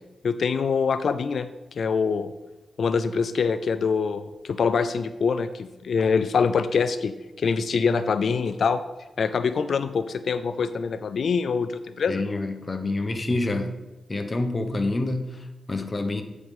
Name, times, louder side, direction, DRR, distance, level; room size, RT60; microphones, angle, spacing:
voice 1, 0.2-1.5 1.8-2.3 2.8-8.8 9.2-12.2, left 5 dB, 70° left, 11 dB, 0.4 m, -24 dB
voice 2, 12.1-13.8 14.1-16.2, left 2 dB, 35° left, 7 dB, 0.9 m, -27 dB
8.8 x 4.9 x 5.4 m, 1.1 s
cardioid pair, 65°, 0 cm